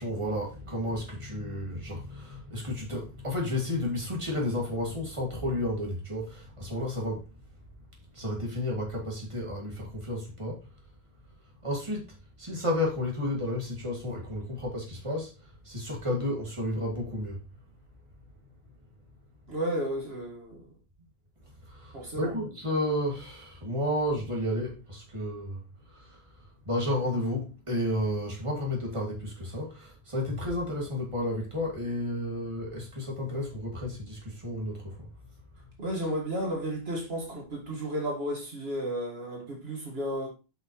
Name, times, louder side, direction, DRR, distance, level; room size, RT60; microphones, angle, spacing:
voice 1, 0.0-7.3 8.1-10.6 11.6-15.3 15.6-17.4 21.7-25.6 25.9-26.2 26.7-35.0, left 1 dB, 30° right, 2.3 m, -32 dB
voice 2, 19.5-20.7 21.9-22.3 35.8-40.3, equal, 70° right, 2.0 m, -33 dB
8.0 x 5.6 x 3.1 m
omnidirectional pair, 1.1 m